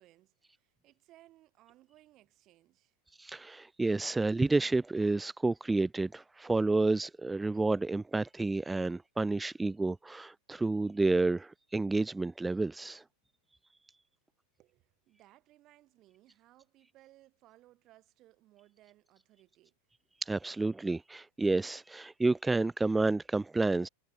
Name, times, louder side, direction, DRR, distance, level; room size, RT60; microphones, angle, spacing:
voice 1, 0.0-3.0 14.6-19.8, right 16 dB, 35° right, 7.2 m, -62 dB
voice 2, 3.2-13.0 20.2-23.9, right 3 dB, 10° right, 0.4 m, -30 dB
figure-of-eight pair, 90°, 0 cm